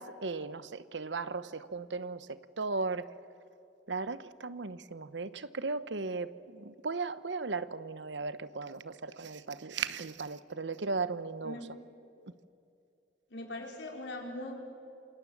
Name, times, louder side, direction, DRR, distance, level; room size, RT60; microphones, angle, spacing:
voice 1, 0.0-3.1 3.9-11.7, right 4 dB, 85° right, 0.9 m, -36 dB
voice 2, 13.3-14.5, left 1 dB, 85° left, 4.9 m, -40 dB
27.5 x 26.5 x 7.3 m
head